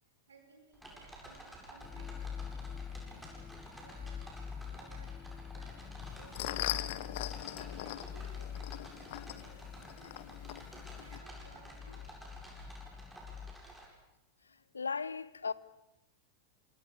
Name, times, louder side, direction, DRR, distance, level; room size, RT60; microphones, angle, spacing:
voice 1, 0.0-7.4 7.8-12.2, right 3 dB, 70° right, 6.8 m, -62 dB
sound 1, 0.7-13.9, right 1 dB, ahead, 8.0 m, -52 dB
sound 2, 1.8-13.5, left 7 dB, 20° left, 1.6 m, -45 dB
sound 3, 6.0-11.2, left 14 dB, 50° left, 1.3 m, -41 dB
voice 2, 14.7-15.5, left 5 dB, 75° left, 0.9 m, -36 dB
27.5 x 27.5 x 6.9 m
figure-of-eight pair, 90°, 0 cm